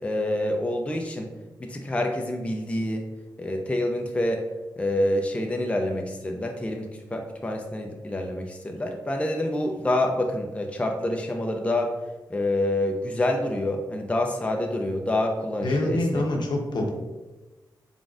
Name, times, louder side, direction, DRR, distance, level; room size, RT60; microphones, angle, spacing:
voice 1, 0.0-1.3 1.6-3.1 3.4-4.4 4.8-11.9 12.3-16.2, left 1 dB, 15° left, 2 dB, 0.4 m, -27 dB
voice 2, 15.6-16.9, left 1 dB, 65° left, 1 dB, 0.8 m, -25 dB
3.8 x 3.5 x 2.4 m, 1.1 s
cardioid pair, 65°, 8 cm